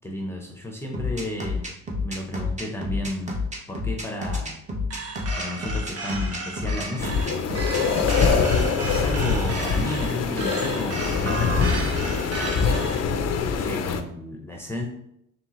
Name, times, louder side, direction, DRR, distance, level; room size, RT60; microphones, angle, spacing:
voice 1, 0.0-1.7 2.0-3.4 3.7-4.6 5.4-7.4 8.9-12.0 13.5-14.8, left 1 dB, 10° left, 0 dB, 0.7 m, -33 dB
sound 1, 0.9-8.3, left 3 dB, 25° right, 1.0 m, -29 dB
sound 2, 4.9-13.0, right 3 dB, 50° right, 0.9 m, -33 dB
sound 3, 7.0-14.0, left 5 dB, 60° left, 0.5 m, -24 dB
4.5 x 3.3 x 3.0 m, 0.75 s
cardioid pair, 90°, 30 cm